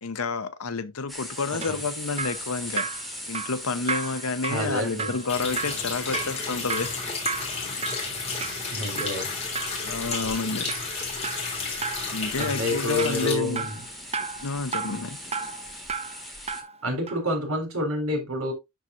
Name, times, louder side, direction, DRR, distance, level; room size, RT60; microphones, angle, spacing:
voice 1, 0.0-2.9 3.3-6.9 7.6-7.8 9.8-10.7 12.1-13.7 14.4-15.2, left 4 dB, 85° left, 0.9 m, -30 dB
sound 1, 1.1-16.6, equal, ahead, 1.9 m, -41 dB
Drip, 1.3-16.8 17.1-17.2, right 5 dB, 30° right, 0.7 m, -35 dB
voice 2, 4.5-5.2 8.7-9.3 12.4-13.8 16.8-18.5, left 1 dB, 75° right, 3.8 m, -28 dB
Water tap faucet, 5.3-13.3, left 4 dB, 30° left, 3.5 m, -32 dB
12.5 x 4.6 x 2.6 m
head